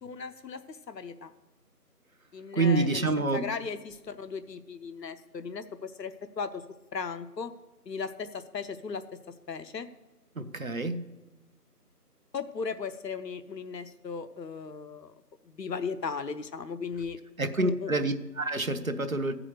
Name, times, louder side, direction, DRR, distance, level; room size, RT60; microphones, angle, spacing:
voice 1, 0.0-1.3 2.3-6.6 6.9-7.5 7.9-9.0 9.5-9.9 12.3-17.2 17.6-17.9, left 5 dB, 80° left, 10 dB, 0.8 m, -37 dB
voice 2, 2.5-3.5 10.4-11.0 17.4-19.3, right 2 dB, 55° right, 9 dB, 0.7 m, -27 dB
13.5 x 4.9 x 6.4 m, 1.2 s
figure-of-eight pair, 175°, 49 cm